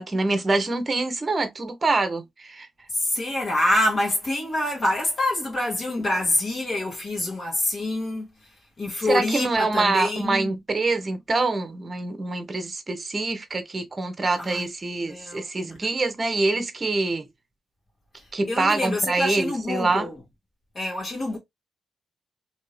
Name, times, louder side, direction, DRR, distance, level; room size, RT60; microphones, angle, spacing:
voice 1, 0.0-2.7 9.1-17.3 18.3-20.1, right 3 dB, 30° right, 0.8 m, -25 dB
voice 2, 2.9-8.3 8.8-10.5 14.3-14.7 15.0-15.4 18.5-20.1 20.7-21.4, left 1 dB, 45° left, 1.4 m, -26 dB
2.8 x 2.6 x 3.1 m
cardioid pair, 95°, 0 cm